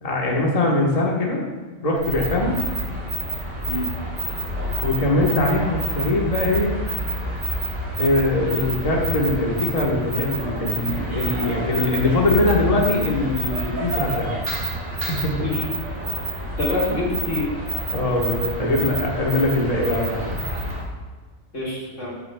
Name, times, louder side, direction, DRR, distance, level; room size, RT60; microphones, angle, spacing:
voice 1, 0.0-1.4 1.8-2.6 4.8-6.7 8.0-14.4 14.9-15.3 17.9-20.4, left 2 dB, 30° left, -2 dB, 1.4 m, -22 dB
sound 1, 2.0-20.9, right 1 dB, 75° right, 1.9 m, -28 dB
voice 2, 16.6-17.4 21.5-22.1, left 2 dB, 85° left, -5 dB, 2.5 m, -26 dB
14.0 x 6.9 x 2.3 m, 1.4 s
omnidirectional pair, 1.2 m